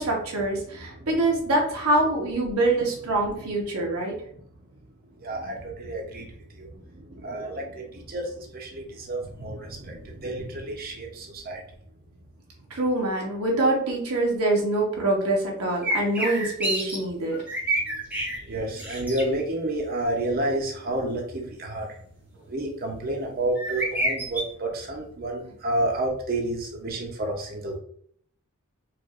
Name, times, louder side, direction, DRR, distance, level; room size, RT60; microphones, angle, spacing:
voice 1, 0.0-4.1 12.7-17.4, right 2 dB, 85° right, -2 dB, 1.0 m, -25 dB
voice 2, 0.7-1.1 5.2-11.6 18.4-22.0 22.5-27.8, right 1 dB, 40° right, 1 dB, 0.7 m, -30 dB
sound 1, 15.8-17.0 17.3-18.4 18.8-19.2 23.6-24.4, right 1 dB, 5° right, 0.6 m, -27 dB
4.6 x 2.5 x 2.4 m, 0.63 s
head